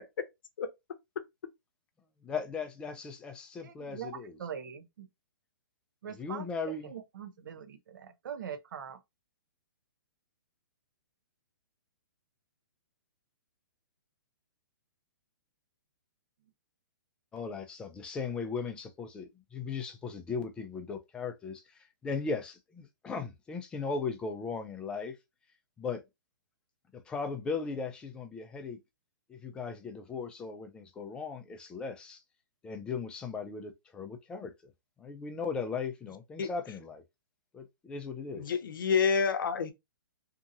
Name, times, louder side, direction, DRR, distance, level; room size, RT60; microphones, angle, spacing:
voice 1, 2.2-4.4 6.1-6.9 17.3-21.6 22.0-25.1 25.8-26.0 26.9-28.8 29.3-32.2 32.6-34.7 35.0-37.0 37.5-38.5, left 5 dB, 10° left, 0.3 m, -37 dB
voice 2, 3.6-5.1 6.0-9.0, right 8 dB, 65° right, 0.7 m, -43 dB
voice 3, 38.3-39.7, left 6 dB, 70° left, 0.6 m, -28 dB
2.7 x 2.5 x 2.6 m
hypercardioid pair, 150°, 12 cm